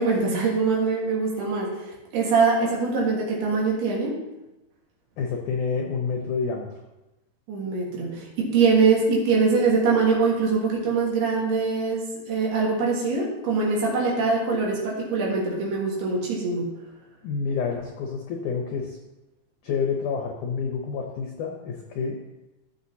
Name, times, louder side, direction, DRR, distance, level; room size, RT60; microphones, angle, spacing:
voice 1, 0.0-1.7 2.1-4.2 7.5-16.7, right 4 dB, 80° right, -3 dB, 3.6 m, -23 dB
voice 2, 5.2-6.7 17.2-19.0 19.6-22.2, left 5 dB, 75° left, 1 dB, 1.9 m, -28 dB
14.5 x 6.5 x 2.8 m, 1.0 s
omnidirectional pair, 4.6 m